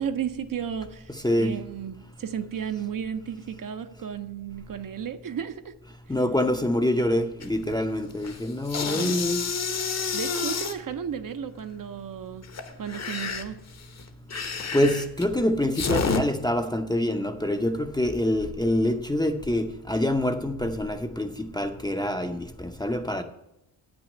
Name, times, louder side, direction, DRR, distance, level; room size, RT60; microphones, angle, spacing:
voice 1, 0.0-1.1 1.4-5.8 8.9-9.2 10.1-12.4 12.8-13.6, right 8 dB, 45° right, 0.8 m, -33 dB
voice 2, 1.1-1.6 6.1-9.5 14.7-23.2, left 1 dB, 10° left, 0.7 m, -26 dB
sound 1, 7.4-7.8 8.1-10.8 12.4-16.2, left 5 dB, 35° left, 0.9 m, -30 dB
8.8 x 6.2 x 8.3 m
wide cardioid pair, 135°, 45 cm